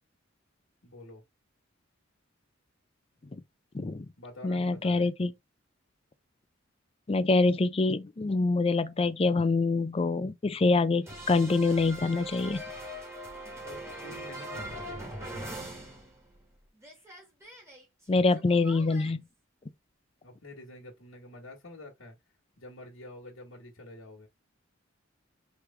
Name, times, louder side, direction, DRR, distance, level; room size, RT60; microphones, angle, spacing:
voice 1, 0.8-1.2 4.2-5.1 13.6-15.2 20.2-22.1 22.6-24.3, left 2 dB, 75° left, 1.6 m, -48 dB
voice 2, 3.7-4.1 4.4-5.3 7.1-12.6 18.1-19.2, left 3 dB, 30° left, 0.5 m, -25 dB
sound 1, 11.1-16.5 16.8-19.1, right 1 dB, 15° right, 1.9 m, -42 dB
4.7 x 3.2 x 3.3 m
head